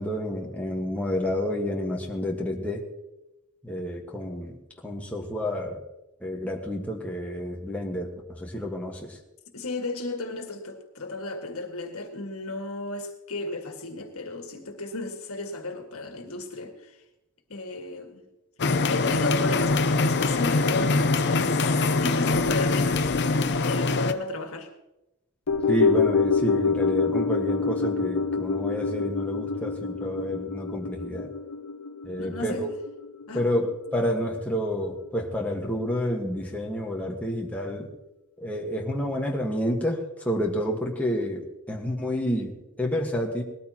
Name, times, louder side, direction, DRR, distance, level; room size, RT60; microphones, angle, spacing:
voice 1, 0.0-2.8 3.6-4.6 4.8-5.8 6.2-9.2 25.7-31.3 32.0-32.7 33.3-37.9 38.4-43.4, equal, 5° left, 1.5 m, -29 dB
voice 2, 9.5-17.0 17.5-18.2 18.9-23.0 23.6-24.7 32.2-32.7 33.3-33.5, left 2 dB, 70° left, 1.9 m, -34 dB
sound 1, 18.6-24.1, left 3 dB, 50° left, 0.7 m, -23 dB
sound 2, 25.5-33.9 34.2-34.3, left 5 dB, 90° left, 0.8 m, -26 dB
20.0 x 13.5 x 3.0 m
head